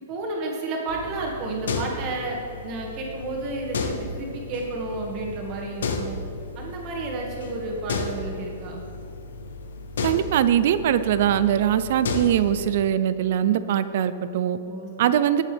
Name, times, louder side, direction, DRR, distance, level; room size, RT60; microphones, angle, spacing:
voice 1, 0.1-6.2 6.6-8.8 14.6-15.1, right 2 dB, 30° right, -1 dB, 2.0 m, -32 dB
sound 1, 0.9-12.8, left 3 dB, 90° left, 1.0 m, -33 dB
voice 2, 10.0-14.6 15.0-15.4, right 10 dB, 50° right, 13 dB, 0.5 m, -22 dB
18.0 x 7.3 x 3.5 m, 2.6 s
hypercardioid pair, 170°, 0 cm